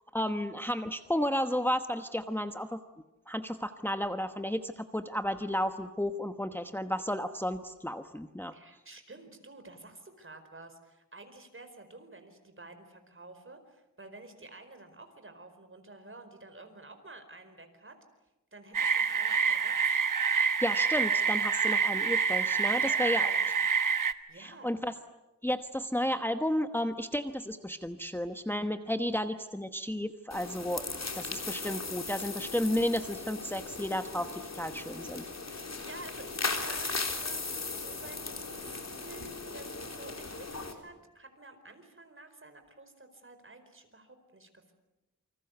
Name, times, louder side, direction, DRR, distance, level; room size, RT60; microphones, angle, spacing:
voice 1, 0.1-2.8 3.3-8.6 20.6-23.3 24.3-24.9 25.4-30.9 31.1-35.2, equal, 5° left, 7 dB, 1.1 m, -32 dB
voice 2, 8.5-18.0 18.5-20.0 22.6-23.4 24.3-24.8 35.5-44.7, right 2 dB, 40° right, 7 dB, 4.7 m, -50 dB
sound 1, 18.7-24.1, right 6 dB, 80° right, 1.3 m, -27 dB
sound 2, 30.3-40.7, left 3 dB, 55° left, 3.6 m, -38 dB
28.5 x 25.5 x 8.2 m, 0.99 s
wide cardioid pair, 100°, 31 cm